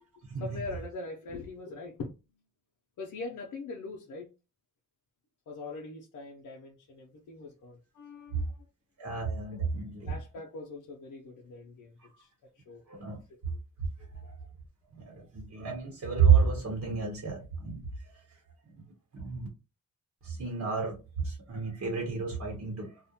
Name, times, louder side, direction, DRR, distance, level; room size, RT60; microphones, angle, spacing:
voice 1, 0.4-2.1 3.0-4.3 5.5-8.6 10.0-12.3 12.5-13.4, left 3 dB, 75° left, 0.6 m, -42 dB
voice 2, 9.0-10.1 12.9-13.5 14.2-14.3 14.9-17.8 19.1-19.5 20.2-23.0, right 6 dB, 60° right, 1.0 m, -30 dB
2.4 x 2.1 x 2.7 m
cardioid pair, 65°, 32 cm